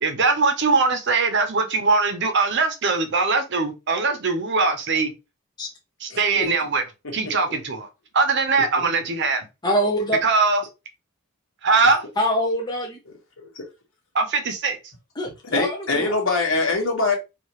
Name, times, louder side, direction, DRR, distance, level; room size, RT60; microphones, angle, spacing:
voice 1, 0.0-5.1 6.0-6.8 7.1-7.9 8.1-9.5 10.2-10.6 11.6-12.0 14.1-14.8, right 4 dB, 50° right, 0.8 m, -21 dB
voice 2, 6.1-6.5 13.4-13.6 15.5-17.1, left 3 dB, 60° left, 1.4 m, -23 dB
voice 3, 9.6-10.2 12.2-13.0 15.2-16.1, equal, 20° left, 0.6 m, -24 dB
4.7 x 2.5 x 3.0 m
head